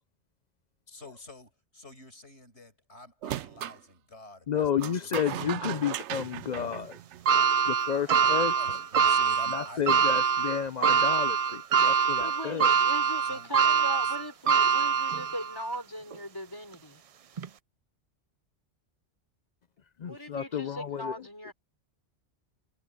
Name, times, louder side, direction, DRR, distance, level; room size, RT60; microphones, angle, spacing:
voice 1, 0.9-4.9 5.4-6.0 7.9-10.2 13.2-14.1, left 2 dB, 70° left, 7.2 m, -49 dB
sound 1, 3.2-3.8 4.8-7.5, right 12 dB, 80° right, 0.9 m, -37 dB
voice 2, 4.5-7.0 7.7-8.5 9.5-12.7 20.0-21.1, left 8 dB, 50° left, 0.5 m, -31 dB
sound 2, 7.3-15.6 16.1-16.2 17.4-17.5, right 7 dB, 60° right, 0.3 m, -24 dB
voice 3, 12.2-17.0 20.0-21.5, equal, 20° left, 4.7 m, -39 dB
omnidirectional pair, 1.2 m